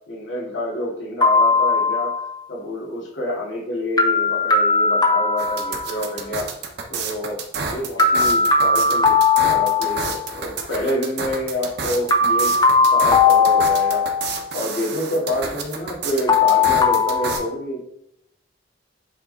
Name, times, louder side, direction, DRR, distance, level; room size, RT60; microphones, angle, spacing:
voice 1, 0.1-2.2 2.5-6.5 6.9-7.4 7.7-12.5 12.9-14.1 14.5-18.0, left 1 dB, 70° left, -4 dB, 2.2 m, -28 dB
sound 1, 1.2-2.3 4.0-6.3 8.0-10.3 12.1-14.4 16.3-17.4, left 4 dB, 20° left, 0.6 m, -18 dB
sound 2, 5.4-17.4, right 5 dB, 55° right, 0.9 m, -30 dB
7.8 x 3.6 x 4.1 m, 0.77 s
head